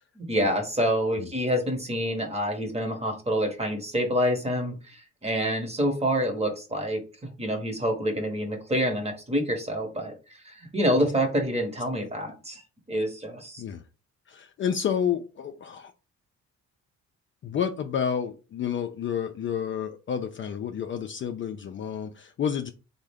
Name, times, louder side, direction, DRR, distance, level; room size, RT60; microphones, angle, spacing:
voice 1, 0.2-10.1 10.4-12.6 12.9-13.6, equal, 20° right, 4 dB, 1.0 m, -27 dB
voice 2, 14.3-15.9 17.4-22.7, left 8 dB, 40° left, 6 dB, 0.4 m, -30 dB
3.5 x 2.1 x 3.4 m, 0.33 s
cardioid pair, 90°, 30 cm